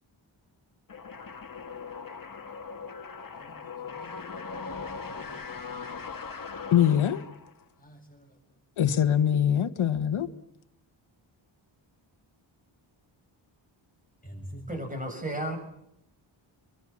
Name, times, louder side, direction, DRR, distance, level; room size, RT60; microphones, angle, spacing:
sound 1, 0.9-7.6, left 5 dB, 45° left, 2.1 m, -40 dB
voice 1, 3.3-5.3 7.8-8.3 14.2-14.6, equal, 15° left, 8.0 m, -48 dB
voice 2, 6.7-7.2 8.8-10.3, left 9 dB, 85° left, 1.4 m, -23 dB
voice 3, 14.7-15.6, right 1 dB, 15° right, 7.4 m, -33 dB
27.0 x 23.0 x 7.3 m
wide cardioid pair, 125°, 48 cm